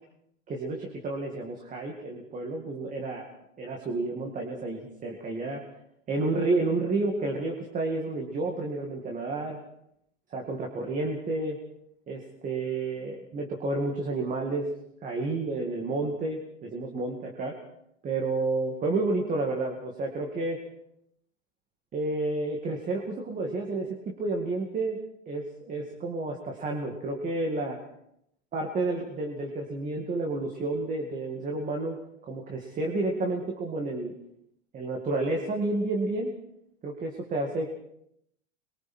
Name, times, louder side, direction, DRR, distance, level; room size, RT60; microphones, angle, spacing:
voice 1, 0.5-3.3 3.6-5.6 6.1-9.6 10.3-11.6 12.1-14.7 15.0-17.6 18.0-20.6 21.9-25.0 25.3-27.8 28.5-32.0 32.2-34.1 34.7-36.3 36.8-37.7, right 2 dB, 20° right, 1 dB, 2.2 m, -30 dB
27.5 x 22.5 x 4.4 m, 0.75 s
supercardioid pair, 150°, 38 cm